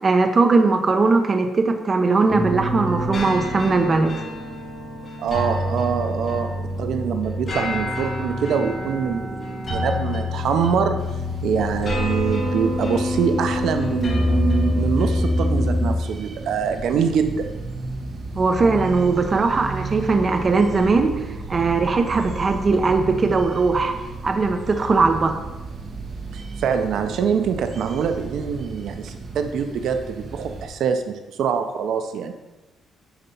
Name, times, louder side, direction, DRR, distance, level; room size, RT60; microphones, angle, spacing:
voice 1, 0.0-4.2 18.4-21.2 21.5-23.9 24.2-25.4, right 3 dB, 25° right, 5 dB, 0.6 m, -19 dB
sound 1, 2.3-16.0, left 1 dB, 30° left, 2.7 m, -25 dB
voice 2, 5.2-6.5 6.8-11.0 11.4-17.5 26.3-32.3, right 7 dB, 60° right, 7 dB, 0.6 m, -24 dB
sound 2, 11.0-30.7, right 3 dB, 45° right, 1.0 m, -34 dB
9.9 x 4.1 x 5.4 m, 1.1 s
cardioid pair, 175°, 0 cm